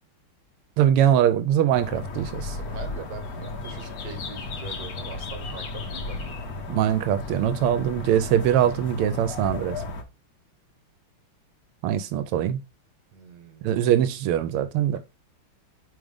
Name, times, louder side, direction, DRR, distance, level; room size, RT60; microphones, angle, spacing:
voice 1, 0.8-2.6 6.7-9.8 11.8-12.6 13.6-15.0, right 10 dB, 85° right, 1.5 m, -22 dB
sound 1, 1.7-10.0, left 3 dB, 55° left, 1.2 m, -34 dB
voice 2, 2.6-6.6 13.1-13.9 14.9-15.0, right 6 dB, 55° right, 1.6 m, -43 dB
4.9 x 3.8 x 5.1 m
omnidirectional pair, 2.4 m